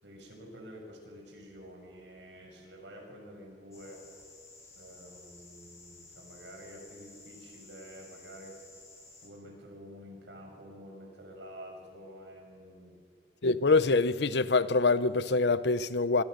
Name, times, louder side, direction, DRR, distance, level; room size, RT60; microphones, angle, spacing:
voice 1, 0.0-4.0 4.8-8.6 9.2-13.0, equal, 85° right, 6.9 m, -49 dB
sound 1, 3.7-9.3, left 3 dB, 15° left, 5.3 m, -54 dB
voice 2, 13.4-16.2, left 3 dB, 75° left, 0.9 m, -25 dB
26.0 x 24.5 x 6.7 m
head